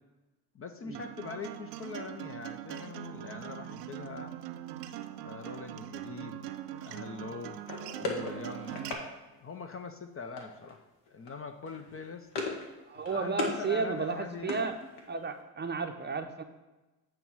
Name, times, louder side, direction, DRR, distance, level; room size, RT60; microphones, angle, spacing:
voice 1, 0.5-4.4 5.2-6.5 6.8-7.6 8.0-8.8 9.4-12.3 13.1-14.6, left 4 dB, 30° left, 7 dB, 0.6 m, -42 dB
Acoustic guitar, 0.9-8.9, right 12 dB, 85° right, 0.6 m, -42 dB
sound 1, 7.7-9.1 10.4-10.8 11.1-11.3 11.6-12.7 13.0-13.6 14.0-15.2, left 3 dB, 65° left, 1.6 m, -37 dB
voice 2, 12.9-14.8 15.1-16.4, right 5 dB, 20° right, 6 dB, 0.7 m, -33 dB
8.7 x 3.1 x 6.1 m, 1.1 s
hypercardioid pair, 60°, 48 cm